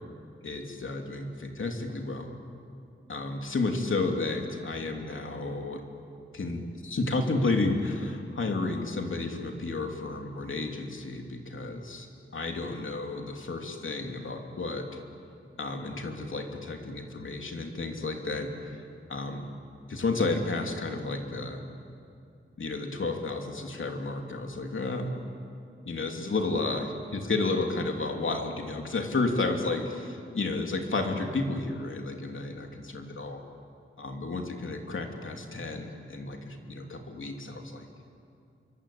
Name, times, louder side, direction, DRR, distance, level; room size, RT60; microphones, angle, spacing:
voice 1, 0.4-2.3 3.1-5.8 6.3-12.1 12.3-15.0 15.6-18.8 19.1-19.5 19.9-21.6 22.6-25.2 25.8-33.4 34.0-37.9, left 3 dB, 75° left, 3 dB, 3.0 m, -32 dB
27.5 x 24.0 x 8.7 m, 2.4 s
wide cardioid pair, 80°, 21 cm